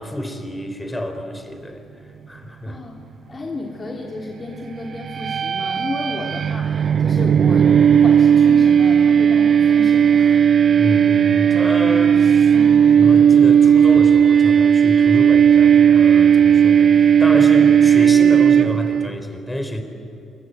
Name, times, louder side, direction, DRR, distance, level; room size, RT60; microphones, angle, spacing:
voice 1, 0.0-1.8 2.3-2.8 10.8-12.5 12.9-19.8, left 1 dB, 10° left, 7 dB, 4.0 m, -28 dB
voice 2, 2.6-3.0 3.3-10.4 12.5-12.8, left 2 dB, 30° left, -1 dB, 3.2 m, -32 dB
sound 1, 5.0-19.1, right 8 dB, 50° right, 0.6 m, -14 dB
28.0 x 23.5 x 8.3 m, 2.8 s
cardioid pair, 90°, 0 cm